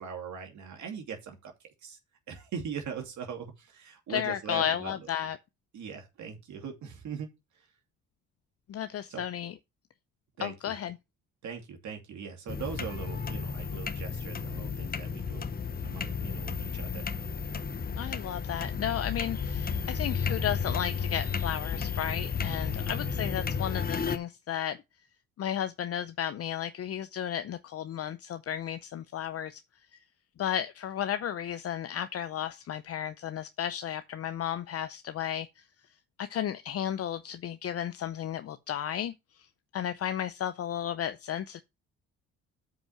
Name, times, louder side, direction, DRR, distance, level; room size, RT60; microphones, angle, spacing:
voice 1, 0.0-1.5 1.8-2.0 2.3-4.9 5.7-7.3 9.1-9.2 10.4-10.7 11.4-15.5 15.8-17.1, right 6 dB, 70° right, 2.8 m, -40 dB
voice 2, 4.1-5.4 8.7-9.6 10.4-11.0 18.0-24.8 25.4-29.6 29.9-30.0 30.4-35.6 36.2-39.1 39.7-41.6, left 10 dB, 50° left, 0.6 m, -33 dB
sound 1, 12.5-24.2, left 6 dB, 30° left, 1.0 m, -33 dB
7.8 x 5.4 x 5.8 m
cardioid pair, 90°, 30 cm